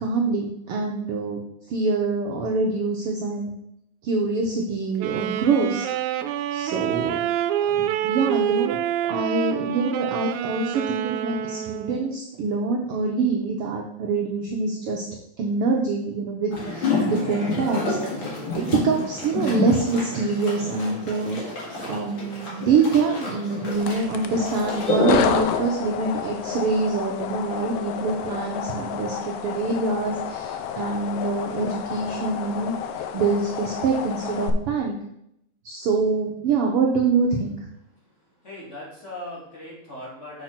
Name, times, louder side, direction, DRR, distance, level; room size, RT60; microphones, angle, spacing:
voice 1, 0.0-1.4 1.7-3.5 4.0-5.9 6.5-7.3 7.6-8.8 9.1-15.0 15.4-21.4 21.8-32.8 33.1-35.0 35.6-37.7, right 4 dB, 70° right, 1 dB, 1.4 m, -25 dB
Wind instrument woodwind instrument, 5.0-12.2, right 11 dB, 85° right, 2.0 m, -27 dB
sound 1, 16.5-25.4, left 2 dB, 45° left, 2.6 m, -28 dB
sound 2, 23.7-34.5, left 8 dB, 80° left, 1.4 m, -30 dB
voice 2, 38.4-40.4, left 1 dB, 25° left, -7 dB, 2.9 m, -39 dB
6.3 x 4.4 x 5.8 m, 0.77 s
omnidirectional pair, 3.3 m